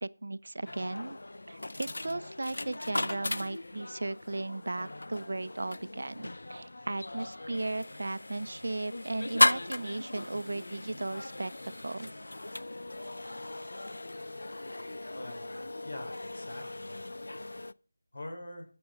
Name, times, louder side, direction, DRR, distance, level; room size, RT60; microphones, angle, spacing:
voice 1, 0.0-1.2 1.5-12.1, right 2 dB, 65° right, 0.7 m, -36 dB
sound 1, 0.6-17.7, left 2 dB, 75° left, 0.5 m, -36 dB
voice 2, 15.1-17.0 18.1-18.6, left 1 dB, 50° left, 5.0 m, -44 dB
14.0 x 7.9 x 4.1 m
figure-of-eight pair, 175°, 0 cm